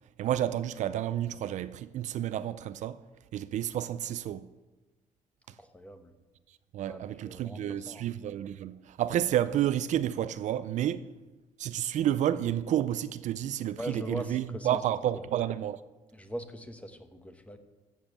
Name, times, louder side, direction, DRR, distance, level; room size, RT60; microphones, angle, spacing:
voice 1, 0.2-3.0 3.3-4.5 6.7-11.1 11.6-15.8, right 11 dB, 65° right, 0.5 m, -30 dB
voice 2, 5.6-6.1 6.8-8.1 13.8-14.8 16.1-17.6, equal, 10° left, 1.1 m, -41 dB
13.5 x 7.2 x 7.5 m
cardioid pair, 130°, 13 cm